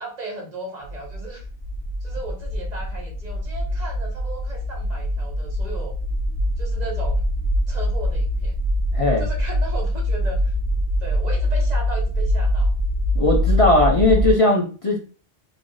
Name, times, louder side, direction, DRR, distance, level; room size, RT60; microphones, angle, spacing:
voice 1, 0.0-1.5 2.0-6.0 6.6-7.2 7.7-8.6 9.2-10.5 11.0-12.7, right 3 dB, 45° right, 0 dB, 1.1 m, -36 dB
sound 1, 0.8-14.3, left 1 dB, 80° left, 1.0 m, -23 dB
voice 2, 8.9-9.3 13.2-15.0, left 2 dB, 40° left, -1 dB, 0.6 m, -18 dB
3.2 x 2.4 x 3.8 m, 0.36 s
omnidirectional pair, 1.0 m